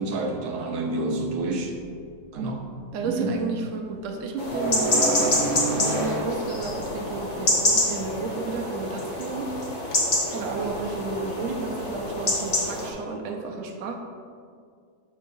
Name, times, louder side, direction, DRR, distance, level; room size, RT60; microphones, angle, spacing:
voice 1, 0.0-1.8 2.3-2.7 3.0-3.4, right 2 dB, 80° right, 3 dB, 1.2 m, -28 dB
voice 2, 2.9-9.6 10.3-13.9, right 4 dB, 65° right, 3 dB, 0.9 m, -32 dB
sound 1, 4.4-12.9, left 1 dB, 35° left, 0.9 m, -27 dB
sound 2, 4.5-7.2, right 2 dB, 20° right, 1.3 m, -28 dB
6.3 x 6.1 x 2.6 m, 2.2 s
omnidirectional pair, 1.6 m